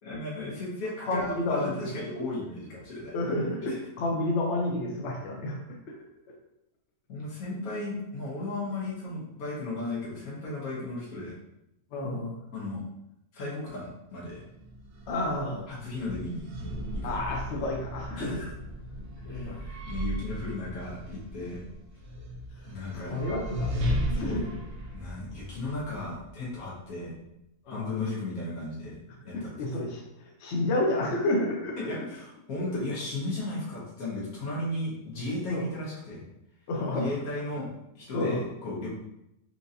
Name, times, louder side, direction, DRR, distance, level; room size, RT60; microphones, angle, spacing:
voice 1, 0.0-3.1 3.7-3.8 7.1-11.3 12.5-12.8 13.3-14.4 15.7-16.5 17.0-17.2 17.5-17.6 18.1-18.5 19.3-21.6 22.6-23.2 24.1-24.5 24.9-27.1 27.7-29.5 31.8-36.2 37.0-37.7 37.9-38.9, left 2 dB, 90° left, -6 dB, 1.5 m, -35 dB
voice 2, 1.1-1.9 3.1-5.6 5.9-6.0 11.9-12.3 15.1-15.7 17.0-18.4 19.0-19.6 23.1-23.7 24.1-24.4 27.7-27.9 29.3-31.9 35.5-35.6 36.7-37.1 38.1-38.4, left 1 dB, 60° left, -1 dB, 0.9 m, -30 dB
sound 1, 14.5-26.6, equal, 80° right, 1.1 m, -36 dB
4.4 x 2.5 x 2.7 m, 0.85 s
omnidirectional pair, 1.5 m